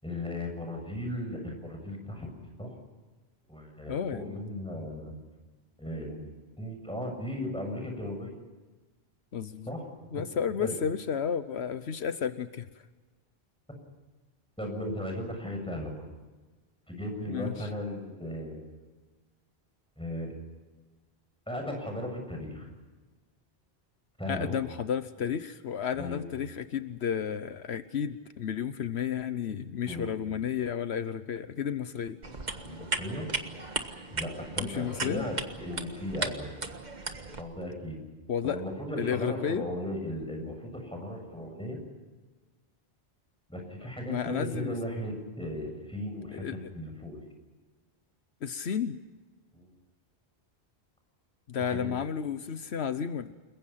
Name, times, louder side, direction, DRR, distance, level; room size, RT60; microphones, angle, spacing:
voice 1, 0.0-2.3 2.6-2.8 3.5-5.1 5.8-6.3 6.6-8.3 9.7-9.9 10.6-10.7 14.6-16.0 16.9-18.8 20.0-20.3 21.5-22.7 24.2-24.6 26.0-26.2 29.8-30.1 32.6-33.3 34.1-36.6 37.4-38.0 38.4-41.8 43.5-47.3 49.5-49.7 51.6-51.9, left 1 dB, 5° left, 2 dB, 7.4 m, -36 dB
voice 2, 3.9-4.4 9.3-9.7 10.1-12.8 17.3-17.7 24.3-32.2 34.6-35.3 38.3-38.6 39.0-39.6 43.8-44.7 46.3-46.7 48.4-49.0 51.5-53.3, left 8 dB, 80° left, 12 dB, 1.2 m, -32 dB
sound 1, 32.2-37.4, right 3 dB, 45° right, 1.7 m, -36 dB
30.0 x 22.0 x 5.7 m, 1.3 s
omnidirectional pair, 1.1 m